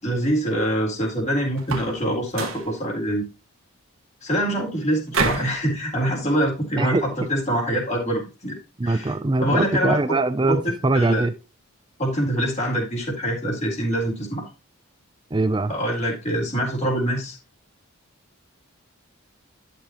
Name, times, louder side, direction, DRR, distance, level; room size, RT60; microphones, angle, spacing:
voice 1, 0.0-3.2 4.2-8.6 8.8-9.1 9.4-10.0 10.5-11.3 12.0-14.5 15.7-17.4, equal, 30° left, 3.9 m, -24 dB
sound 1, 1.6-2.0 2.3-2.7 5.1-5.6, right 4 dB, 65° right, 1.5 m, -26 dB
voice 2, 8.8-11.3 15.3-15.7, right 2 dB, 20° right, 0.5 m, -22 dB
11.5 x 6.9 x 3.0 m
head